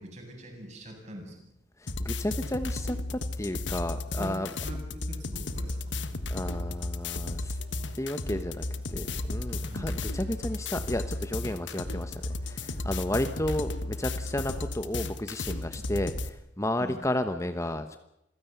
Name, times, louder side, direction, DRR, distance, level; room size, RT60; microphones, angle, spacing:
voice 1, 0.0-1.5 4.1-6.2 9.7-10.0 16.8-17.0, equal, 40° right, 2 dB, 7.6 m, -43 dB
voice 2, 1.8-4.5 6.3-7.6 7.9-18.0, left 1 dB, 15° left, 9 dB, 1.1 m, -32 dB
sound 1, 1.9-16.3, left 2 dB, 80° left, 1.5 m, -34 dB
sound 2, 5.4-15.0, right 1 dB, 75° right, 3.5 m, -54 dB
27.0 x 16.5 x 8.1 m, 0.82 s
head